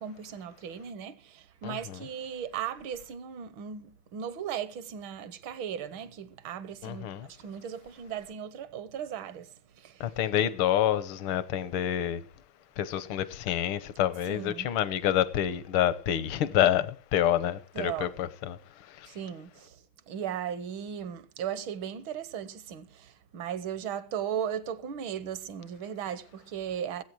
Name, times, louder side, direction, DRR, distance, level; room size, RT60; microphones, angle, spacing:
voice 1, 0.0-10.2 14.3-14.7 17.7-18.1 19.1-27.0, right 8 dB, 70° right, 1.7 m, -37 dB
voice 2, 6.8-7.3 10.0-12.2 12.8-18.6 19.0-19.1, left 11 dB, 80° left, 1.7 m, -27 dB
19.5 x 8.4 x 4.6 m
omnidirectional pair, 2.3 m